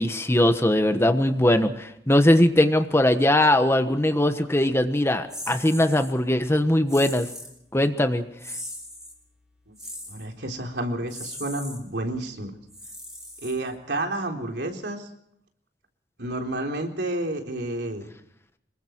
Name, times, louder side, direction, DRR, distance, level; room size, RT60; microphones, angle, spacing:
voice 1, 0.0-7.3 7.7-8.2, left 1 dB, 15° left, 8 dB, 1.3 m, -20 dB
sound 1, 5.3-6.1 6.9-7.6 8.4-9.2 9.8-10.3 11.1-11.8 12.7-13.9, equal, 5° right, 5.7 m, -39 dB
voice 2, 10.1-12.5 13.4-15.1 16.2-18.1, right 1 dB, 65° right, 3 dB, 3.7 m, -30 dB
26.5 x 22.5 x 4.6 m, 0.74 s
head